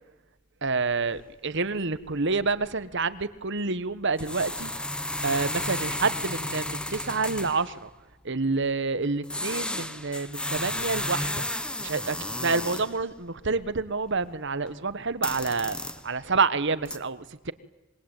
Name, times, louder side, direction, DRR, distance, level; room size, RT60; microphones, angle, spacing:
voice 1, 0.6-4.7 5.2-7.9 8.2-11.4 11.8-15.8 16.0-17.5, right 4 dB, 55° right, 15 dB, 1.3 m, -28 dB
sound 1, 0.7-0.8 1.0-1.3 1.6-1.8 2.1-2.2 2.5-2.6 4.1-7.8 9.2-13.0 13.4-14.7 15.1-16.2 16.7-17.0, left 1 dB, 5° left, 1.3 m, -33 dB
26.5 x 23.0 x 9.1 m, 1.1 s
head